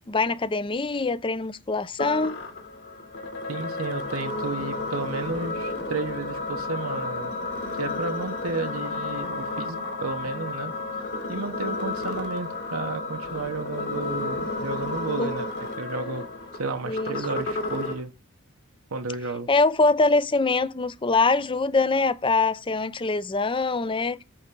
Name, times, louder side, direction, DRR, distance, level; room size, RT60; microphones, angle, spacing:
voice 1, 0.1-2.4 15.2-15.3 16.9-17.2 19.5-24.2, left 3 dB, 25° left, 0.5 m, -23 dB
sound 1, 2.0-18.0, left 2 dB, 55° left, 2.5 m, -32 dB
voice 2, 3.5-7.3 7.8-10.7 11.3-15.5 15.8-16.3 16.6-18.1 18.9-19.5, right 3 dB, 75° right, 1.0 m, -32 dB
8.8 x 3.6 x 6.8 m
head